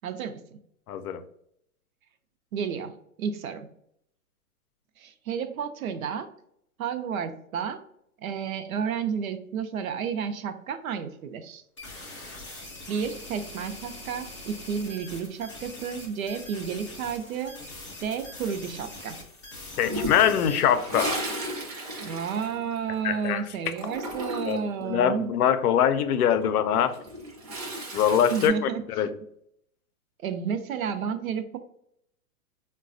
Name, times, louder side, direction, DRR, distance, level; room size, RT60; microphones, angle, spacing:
voice 1, 0.0-0.6 2.5-3.7 5.0-6.3 6.8-7.8 8.2-11.6 12.9-17.6 18.0-19.2 22.0-25.3 28.3-29.1 30.2-31.6, right 7 dB, 70° right, 0.6 m, -31 dB
voice 2, 0.9-1.2 19.8-21.2 23.0-23.4 24.5-27.0 27.9-28.5 29.0-29.1, left 9 dB, 85° left, 0.5 m, -23 dB
sound 1, 11.8-20.6, left 2 dB, 25° left, 0.4 m, -43 dB
Toilet flush, 19.8-23.3 23.5-24.7 26.8-28.5, equal, 25° right, 0.5 m, -34 dB
4.0 x 2.2 x 2.5 m
hypercardioid pair, 155°, 44 cm